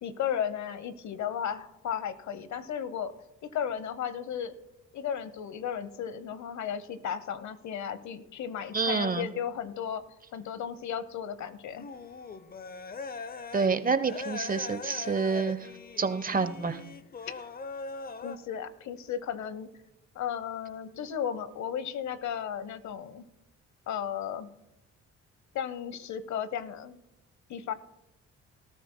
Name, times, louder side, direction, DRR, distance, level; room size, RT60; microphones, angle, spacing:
voice 1, 0.0-3.1 3.5-4.5 4.9-10.1 10.3-11.9 18.2-19.7 20.1-23.2 23.9-24.5 25.5-27.0 27.5-27.7, left 8 dB, 70° left, 14 dB, 1.0 m, -34 dB
voice 2, 8.7-9.3 13.5-15.7 16.0-16.8, right 4 dB, 30° right, 11 dB, 0.9 m, -28 dB
sound 1, 11.7-13.7 14.0-18.4, left 4 dB, 30° left, 0.7 m, -41 dB
19.5 x 13.5 x 2.2 m, 0.88 s
cardioid pair, 90°, 30 cm